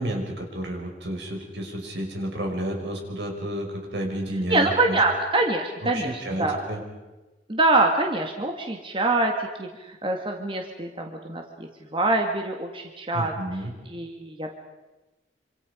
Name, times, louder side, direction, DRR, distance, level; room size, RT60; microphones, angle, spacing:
voice 1, 0.0-3.7 3.9-5.0 5.9-6.8 13.1-13.7, right 1 dB, 80° right, 1 dB, 5.7 m, -31 dB
voice 2, 4.5-6.8 7.5-13.3 13.9-14.5, right 2 dB, 30° right, 2 dB, 2.0 m, -25 dB
26.5 x 26.5 x 5.2 m, 1.1 s
head